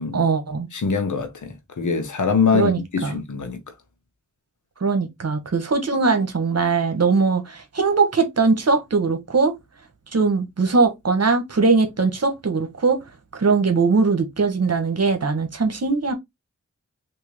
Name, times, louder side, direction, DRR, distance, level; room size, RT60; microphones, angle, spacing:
voice 1, 0.1-0.7 2.5-3.1 4.8-9.5 10.1-13.0 13.3-16.1, right 4 dB, 60° right, 1.2 m, -20 dB
voice 2, 0.7-3.6, left 5 dB, 85° left, 0.9 m, -23 dB
3.6 x 2.8 x 3.1 m
wide cardioid pair, 55°, 30 cm